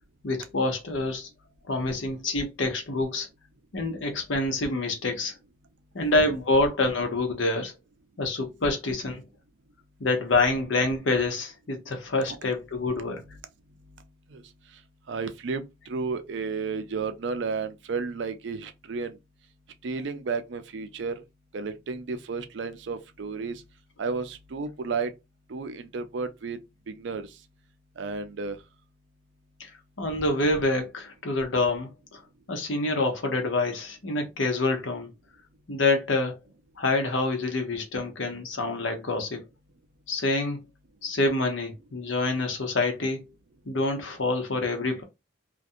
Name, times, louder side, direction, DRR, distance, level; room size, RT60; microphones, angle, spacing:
voice 1, 0.2-1.3 1.7-3.3 3.7-5.3 5.9-7.7 8.2-9.2 10.0-13.2 29.6-29.7 30.0-32.2 32.5-35.1 35.7-36.4 36.8-39.4 40.1-40.6 41.0-43.2 43.7-45.0, left 2 dB, 80° left, 0.8 m, -26 dB
voice 2, 15.1-19.2 19.8-21.1 21.5-23.6 24.0-25.1 25.5-26.6 26.9-27.3 28.0-28.6, right 4 dB, 70° right, 0.4 m, -32 dB
2.5 x 2.2 x 2.6 m
head